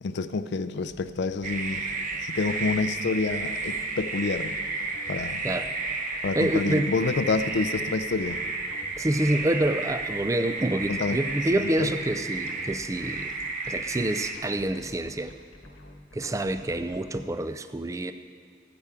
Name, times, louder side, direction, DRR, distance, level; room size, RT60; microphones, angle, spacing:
voice 1, 0.0-1.9 2.2-4.6 5.1-5.4 6.2-8.4 10.9-11.2 11.6-11.9, left 4 dB, 60° left, 12 dB, 0.5 m, -28 dB
sound 1, 0.9-17.2, left 1 dB, 80° left, 1.5 m, -48 dB
sound 2, 1.4-14.3, right 3 dB, 45° right, 0.9 m, -32 dB
voice 2, 6.1-6.9 9.0-13.3 13.6-15.3 16.1-18.1, right 1 dB, 15° right, 10 dB, 0.4 m, -27 dB
15.5 x 9.8 x 3.7 m, 2.2 s
head